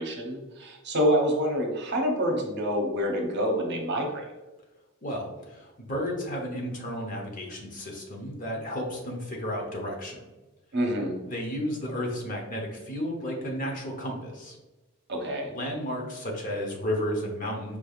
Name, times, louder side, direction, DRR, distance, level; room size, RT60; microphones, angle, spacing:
voice 1, 0.0-4.2 10.7-11.1 15.1-15.5, equal, 55° right, 1 dB, 0.8 m, -27 dB
voice 2, 5.0-10.2 11.2-14.6 15.5-17.8, equal, 40° left, 0 dB, 0.9 m, -33 dB
5.0 x 3.4 x 2.4 m, 1.1 s
head